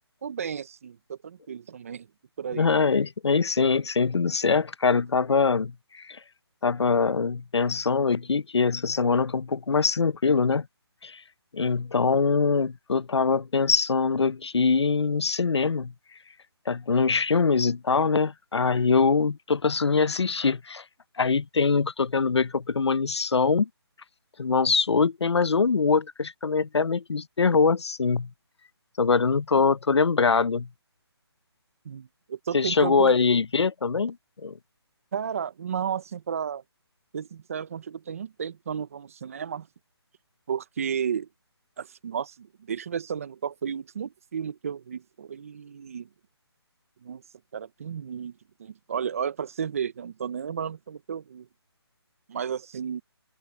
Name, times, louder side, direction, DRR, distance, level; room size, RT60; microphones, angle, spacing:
voice 1, 0.2-2.1 2.4-2.7 31.8-33.1 35.1-36.6 37.1-39.7 40.5-41.3 41.8-46.1 47.0-47.2 47.5-51.5 52.3-53.0, right 7 dB, 30° right, 1.1 m, -33 dB
voice 2, 2.5-6.2 6.6-10.7 11.0-11.2 11.5-15.9 16.7-20.8 21.2-23.7 24.4-28.3 29.0-30.7 32.5-34.2 34.4-34.6, left 5 dB, 80° left, 0.9 m, -23 dB
hypercardioid pair, 170°, 14 cm